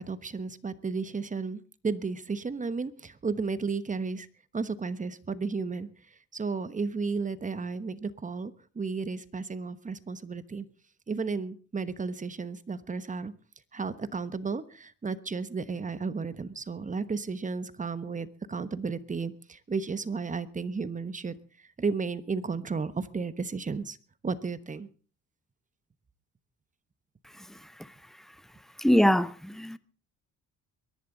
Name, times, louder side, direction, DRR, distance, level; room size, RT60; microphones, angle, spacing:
voice 1, 0.0-4.3 4.5-5.9 6.3-10.7 11.1-13.3 13.7-21.4 21.8-24.0 24.2-24.9, right 4 dB, 25° right, 1.2 m, -33 dB
voice 2, 28.8-29.8, equal, ahead, 0.8 m, -23 dB
23.5 x 11.0 x 4.0 m
cardioid pair, 90°, 30 cm